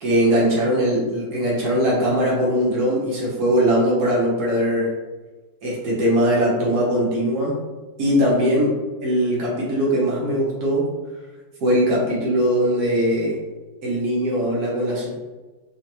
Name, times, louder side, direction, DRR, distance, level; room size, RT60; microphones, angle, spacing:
voice 1, 0.0-4.9 5.6-7.5 8.0-8.7 9.0-10.9 11.6-13.4 13.8-15.2, equal, 80° right, -5 dB, 1.6 m, -20 dB
5.5 x 2.2 x 2.9 m, 1.2 s
omnidirectional pair, 1.7 m